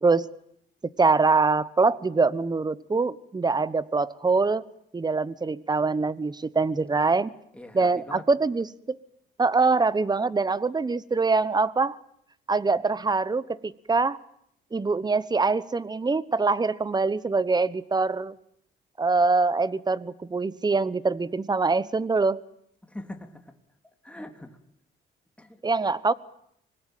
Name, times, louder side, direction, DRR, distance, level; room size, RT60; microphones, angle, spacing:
voice 1, 1.0-4.6 4.9-7.3 7.7-9.0 9.4-12.0 12.5-14.2 14.7-18.3 19.0-22.4 25.6-26.1, right 4 dB, 20° right, 18 dB, 1.1 m, -24 dB
voice 2, 7.5-8.2 22.8-23.6 24.0-24.6 25.4-25.6, left 1 dB, 5° left, 5 dB, 3.2 m, -42 dB
25.0 x 20.0 x 9.1 m, 0.73 s
cardioid pair, 90°, 20 cm